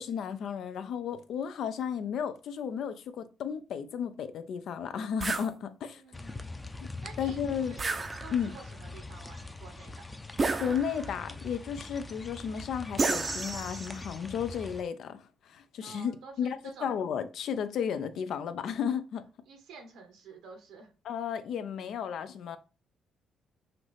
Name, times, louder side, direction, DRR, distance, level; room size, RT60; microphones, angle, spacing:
voice 1, 0.0-6.0 6.8-6.9 7.2-7.8 8.3-8.5 10.6-16.1 16.4-19.2 21.1-22.6, left 7 dB, 70° left, 0.6 m, -33 dB
sound 1, 5.2-5.5 7.8-8.6 10.4-11.2 13.0-14.1, right 3 dB, 30° right, 0.5 m, -31 dB
voice 2, 5.9-6.5 6.8-7.9 8.2-10.1 15.8-17.0 19.5-20.9, right 4 dB, 90° right, 1.2 m, -50 dB
sound 2, 6.1-14.8, left 2 dB, 15° left, 0.6 m, -43 dB
5.9 x 2.6 x 3.2 m
cardioid pair, 90°, 0 cm